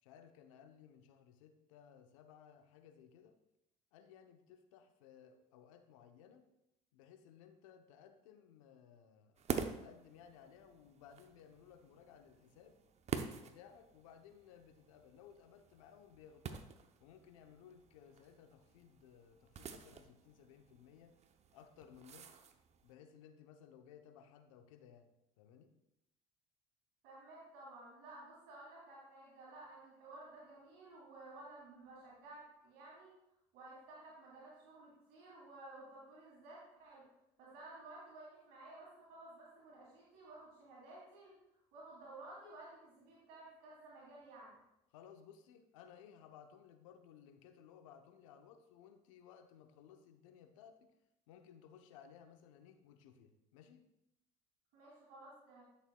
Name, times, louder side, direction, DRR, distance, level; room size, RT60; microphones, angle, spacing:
voice 1, 0.0-3.4 3.9-6.5 6.9-9.4 9.8-12.8 13.4-16.7 17.0-21.1 21.5-22.4 22.8-25.1 25.4-25.7 44.9-50.9 51.3-53.9, left 8 dB, 85° left, 7 dB, 0.8 m, -60 dB
sound 1, 9.4-22.9, right 6 dB, 40° right, 0.7 m, -48 dB
voice 2, 27.0-33.1 33.5-37.0 37.4-41.3 41.7-44.6 54.7-55.6, right 2 dB, 70° right, -6 dB, 2.8 m, -54 dB
11.0 x 6.7 x 2.3 m, 0.84 s
hypercardioid pair, 75°, 17 cm